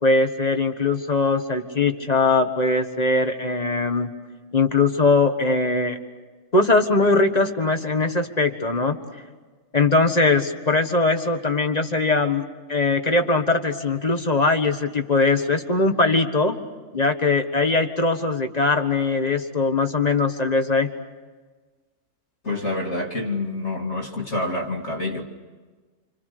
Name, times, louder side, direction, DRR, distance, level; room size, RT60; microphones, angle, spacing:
voice 1, 0.0-4.1 4.5-6.0 6.5-9.0 9.7-12.4 12.7-16.6 16.9-20.9, left 3 dB, 25° left, 1.6 m, -21 dB
voice 2, 22.4-25.3, left 2 dB, 50° left, 2.3 m, -27 dB
28.0 x 27.0 x 6.8 m
omnidirectional pair, 1.6 m